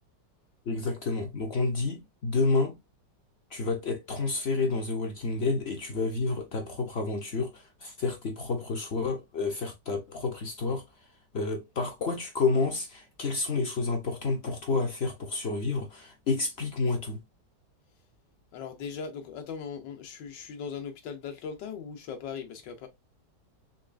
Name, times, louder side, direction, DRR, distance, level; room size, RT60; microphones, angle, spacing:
voice 1, 0.7-2.8 3.5-10.8 11.3-17.2, left 3 dB, 65° left, 0.6 m, -29 dB
voice 2, 18.5-22.9, left 6 dB, 80° left, 1.5 m, -39 dB
4.2 x 3.2 x 2.4 m
omnidirectional pair, 1.9 m